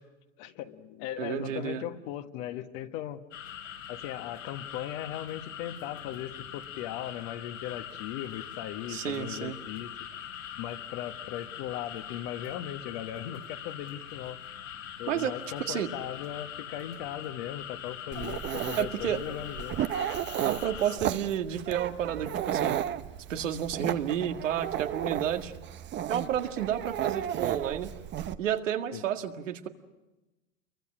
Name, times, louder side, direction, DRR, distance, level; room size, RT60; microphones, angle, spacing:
voice 1, 0.4-3.2 3.9-9.9 10.6-14.4 15.0-19.7 28.9-29.0, left 12 dB, 50° left, 8 dB, 1.6 m, -38 dB
voice 2, 1.2-1.8 8.9-9.6 15.1-15.4 15.7-15.9 18.8-19.2 20.4-22.8 23.3-25.5 26.1-27.9 28.4-29.7, right 10 dB, 80° right, 5 dB, 2.0 m, -31 dB
sound 1, 3.3-21.0, left 9 dB, 85° left, 4.2 m, -42 dB
Dog, 18.1-28.4, right 10 dB, 30° right, 0.9 m, -34 dB
28.0 x 23.5 x 6.2 m, 1.1 s
hypercardioid pair, 110°, 37 cm